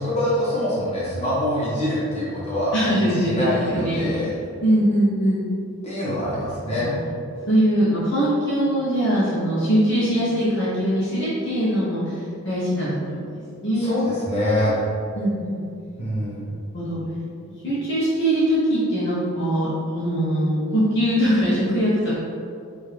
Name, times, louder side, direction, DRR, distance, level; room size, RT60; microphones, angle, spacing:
voice 1, 0.0-4.3 5.8-6.9 13.7-14.7 16.0-16.5, left 1 dB, 30° left, -10 dB, 1.3 m, -25 dB
voice 2, 2.7-4.3 4.6-5.4 6.7-7.0 7.5-12.1 12.4-14.0 15.1-15.6 16.4-17.0 17.4-22.1, equal, 50° left, -10 dB, 0.9 m, -22 dB
4.6 x 2.8 x 3.3 m, 2.4 s
head